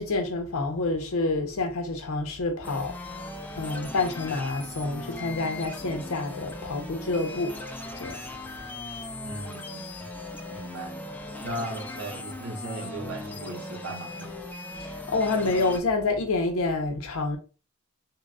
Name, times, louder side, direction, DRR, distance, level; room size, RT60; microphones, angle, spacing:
voice 1, 0.0-2.9 3.6-7.6 8.0-8.2 15.1-17.4, left 3 dB, 75° left, 0.7 m, -28 dB
sound 1, 2.6-15.8, left 2 dB, 10° left, 0.3 m, -38 dB
voice 2, 9.2-10.1 10.5-11.0 11.4-14.4, right 1 dB, 65° right, 0.7 m, -37 dB
3.8 x 2.0 x 2.3 m
head